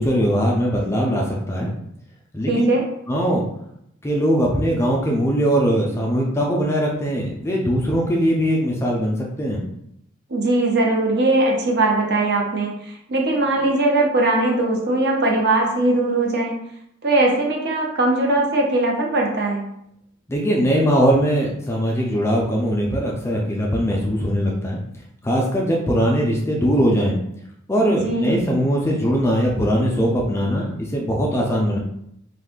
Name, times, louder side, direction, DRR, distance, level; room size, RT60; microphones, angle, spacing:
voice 1, 0.0-1.7 2.3-2.7 3.1-3.4 4.0-9.6 20.3-24.8 25.2-27.1 27.7-31.8, equal, 10° left, -1 dB, 0.3 m, -20 dB
voice 2, 2.5-2.8 10.3-16.7 17.0-19.6 27.9-28.4, right 2 dB, 50° right, 0 dB, 0.6 m, -20 dB
2.5 x 2.4 x 3.6 m, 0.75 s
head